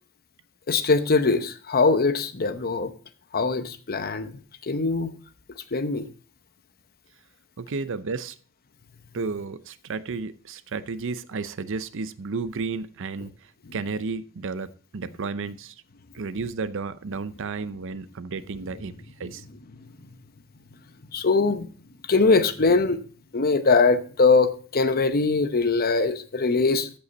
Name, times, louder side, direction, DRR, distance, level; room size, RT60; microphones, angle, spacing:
voice 1, 0.7-2.9 3.3-4.3 4.6-5.1 5.7-6.1 21.1-21.7 22.1-23.0 23.3-27.0, left 4 dB, 45° left, 0.9 m, -22 dB
voice 2, 7.6-8.3 9.1-13.3 13.7-15.7 16.1-18.9 19.2-19.4, right 4 dB, 65° right, 0.6 m, -32 dB
15.0 x 5.5 x 4.1 m
head